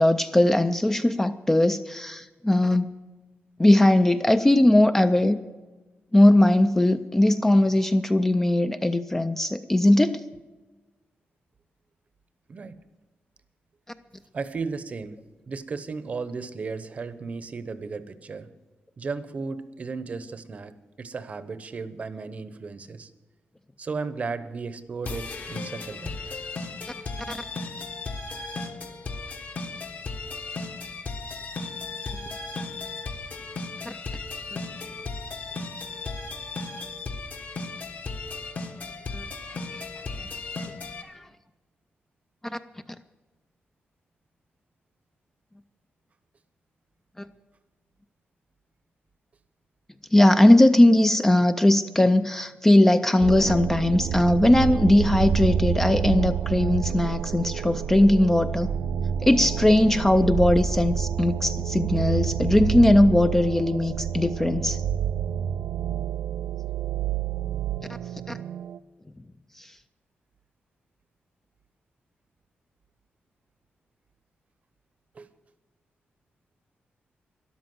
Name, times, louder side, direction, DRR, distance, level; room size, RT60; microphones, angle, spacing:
voice 1, 0.0-2.9 3.6-5.4 6.1-10.2 27.3-27.4 33.9-34.0 34.5-34.6 39.1-39.2 39.7-39.9 40.2-40.3 41.0-41.2 42.4-42.6 47.2-47.3 50.1-58.7 59.2-64.8 68.3-68.4 69.6-69.7, left 1 dB, 10° left, 9 dB, 0.4 m, -19 dB
voice 2, 14.3-15.2 15.5-18.5 19.0-20.7 21.0-23.1 23.8-26.1 32.2-32.3 75.1-75.3, right 4 dB, 35° right, 13 dB, 0.8 m, -35 dB
sound 1, 25.0-41.0, left 3 dB, 50° left, 1.4 m, -36 dB
sound 2, 53.2-68.8, right 8 dB, 85° right, 0.5 m, -28 dB
13.0 x 11.5 x 7.7 m, 1.2 s
wide cardioid pair, 175°, 4 cm